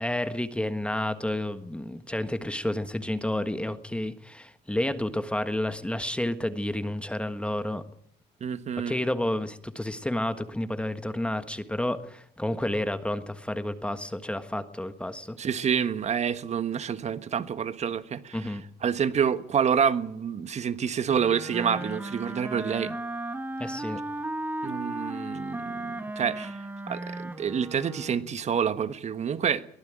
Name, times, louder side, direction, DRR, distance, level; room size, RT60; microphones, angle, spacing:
voice 1, 0.0-7.8 8.8-15.4 18.3-18.6 23.6-24.0, left 1 dB, 5° left, 1.5 m, -30 dB
voice 2, 8.4-9.0 15.4-23.0 24.6-26.6 26.9-29.7, right 7 dB, 40° right, 1.4 m, -28 dB
Wind instrument woodwind instrument, 21.1-28.4, right 1 dB, 10° right, 1.8 m, -35 dB
23.0 x 15.0 x 9.0 m
cardioid pair, 110°, 17 cm